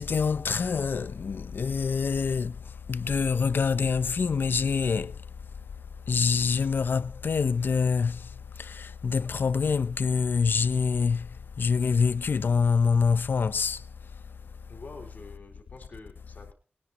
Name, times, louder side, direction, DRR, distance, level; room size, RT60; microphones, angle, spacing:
voice 1, 0.0-14.7, left 5 dB, 70° left, 0.6 m, -26 dB
voice 2, 14.7-16.5, left 3 dB, 50° left, 3.7 m, -47 dB
22.0 x 9.8 x 3.0 m
wide cardioid pair, 100°, 4 cm